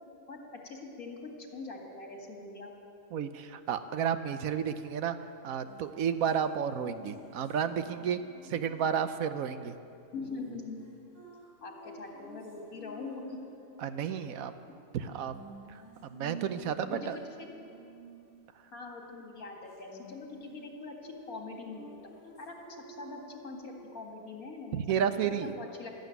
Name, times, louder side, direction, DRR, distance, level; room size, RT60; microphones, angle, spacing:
voice 1, 0.6-2.7 10.1-10.8 11.6-13.4 16.8-17.5 18.7-21.8 22.4-25.1 25.4-25.9, left 3 dB, 80° left, 1 dB, 2.4 m, -43 dB
voice 2, 3.1-9.8 13.8-14.5 14.9-15.4 15.7-17.2 24.7-25.5, right 8 dB, 75° right, 11 dB, 1.1 m, -32 dB
sound 1, 5.7-9.0 10.1-13.9 15.3-18.4 19.7-20.7 21.0-23.9, right 1 dB, 55° right, 3.2 m, -51 dB
13.0 x 12.0 x 9.2 m, 2.6 s
omnidirectional pair, 1.5 m